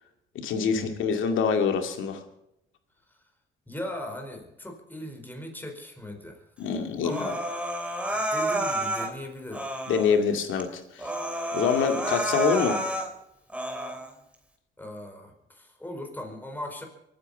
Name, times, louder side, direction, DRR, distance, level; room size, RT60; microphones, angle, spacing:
voice 1, 0.3-2.2 6.6-7.3 9.9-11.1 11.5-12.8, left 6 dB, 80° left, 6 dB, 2.3 m, -25 dB
voice 2, 3.7-6.4 7.0-7.4 8.1-9.7 14.8-16.8, left 1 dB, 10° left, 3 dB, 4.8 m, -39 dB
Human voice, 7.1-9.1 9.5-10.2 10.6-10.7 11.0-13.1 13.5-14.1, right 1 dB, 5° right, 2.9 m, -30 dB
24.0 x 9.5 x 5.6 m, 0.85 s
cardioid pair, 90°, 20 cm